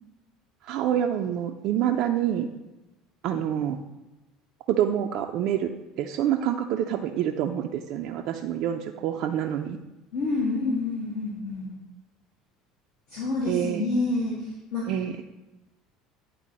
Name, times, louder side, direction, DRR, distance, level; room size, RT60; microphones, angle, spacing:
voice 1, 0.6-2.5 3.2-3.8 4.7-5.7 6.0-9.8 13.5-13.8 14.9-15.3, right 10 dB, 55° right, 4 dB, 0.4 m, -27 dB
voice 2, 10.1-11.7 13.1-14.9, left 2 dB, 65° left, -7 dB, 1.6 m, -28 dB
9.0 x 4.0 x 4.1 m, 1.0 s
hypercardioid pair, 70°, 0 cm